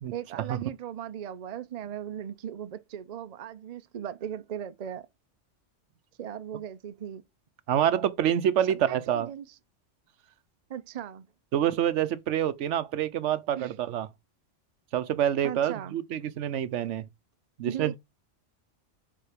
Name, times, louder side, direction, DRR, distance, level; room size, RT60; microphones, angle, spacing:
voice 1, 0.1-5.1 6.2-7.2 8.7-9.5 10.7-11.3 13.5-13.7 15.4-16.0 16.8-16.9 17.7-18.0, right 10 dB, 45° right, 0.5 m, -38 dB
voice 2, 7.7-9.3 11.5-14.1 14.9-17.1 17.6-18.0, right 10 dB, 75° right, 1.0 m, -27 dB
8.9 x 3.9 x 5.0 m
omnidirectional pair, 1.3 m